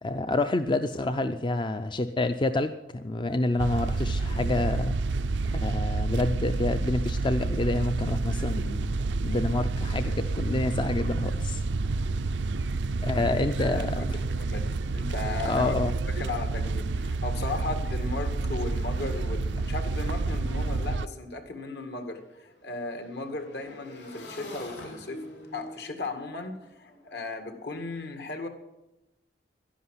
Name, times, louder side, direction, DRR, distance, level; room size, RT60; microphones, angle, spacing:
voice 1, 0.0-5.0 5.5-11.6 13.0-14.2 15.4-15.9, left 2 dB, 25° left, 10 dB, 0.5 m, -28 dB
sound 1, 3.6-21.1, right 3 dB, 85° right, 0.5 m, -29 dB
voice 2, 13.1-15.7 16.1-25.2 25.5-28.5, left 2 dB, 65° left, 6 dB, 2.1 m, -36 dB
Motorcycle / Engine, 21.1-27.8, left 1 dB, 85° left, 3.9 m, -46 dB
11.0 x 11.0 x 9.6 m, 0.96 s
head